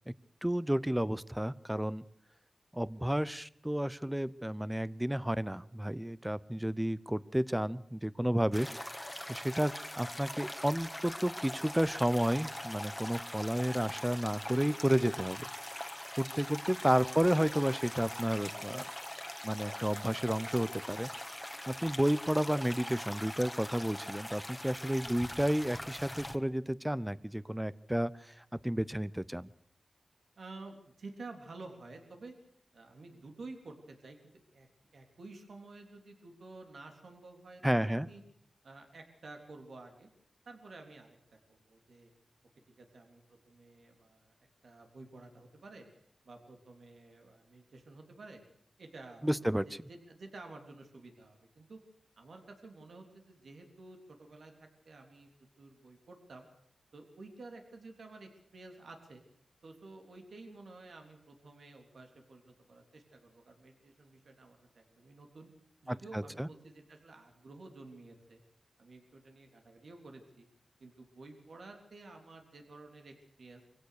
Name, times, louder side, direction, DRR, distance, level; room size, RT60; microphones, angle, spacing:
voice 1, 0.4-2.0 2.7-8.7 9.3-15.4 16.2-18.8 19.4-21.1 21.7-28.3 28.6-29.5 37.6-38.1 49.2-49.6 65.9-66.5, equal, 10° right, 18 dB, 0.8 m, -31 dB
sound 1, 8.5-26.4, left 1 dB, 10° left, 1.8 m, -42 dB
voice 2, 30.4-32.3 32.7-38.2 38.6-40.1 40.5-42.1 42.8-44.3 44.6-45.9 46.2-48.4 48.8-51.8 52.2-56.5 56.9-59.2 59.6-65.5 65.8-68.4 68.8-70.5 70.8-73.6, right 3 dB, 75° right, 3 dB, 3.5 m, -51 dB
24.0 x 16.5 x 6.6 m, 0.66 s
cardioid pair, 50°, 0 cm